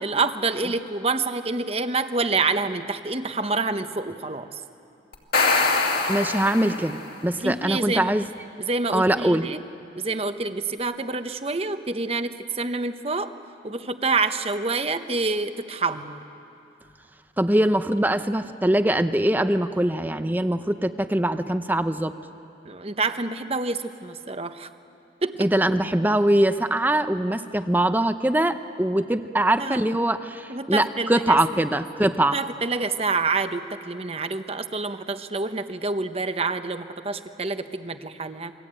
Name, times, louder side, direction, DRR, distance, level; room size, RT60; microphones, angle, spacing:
voice 1, 0.0-4.6 7.4-8.3 8.6-9.6 10.0-13.3 13.6-16.2 22.6-24.7 25.2-25.5 26.1-26.2 29.6-29.8 30.5-31.4 32.3-38.5, right 3 dB, 30° right, 9 dB, 0.9 m, -27 dB
sound 1, 5.1-7.1, left 3 dB, 50° left, 2.4 m, -23 dB
voice 2, 6.1-8.3 8.9-9.5 17.4-22.1 25.4-32.4, right 1 dB, 10° right, 10 dB, 0.6 m, -22 dB
28.5 x 22.5 x 9.0 m, 2.7 s
head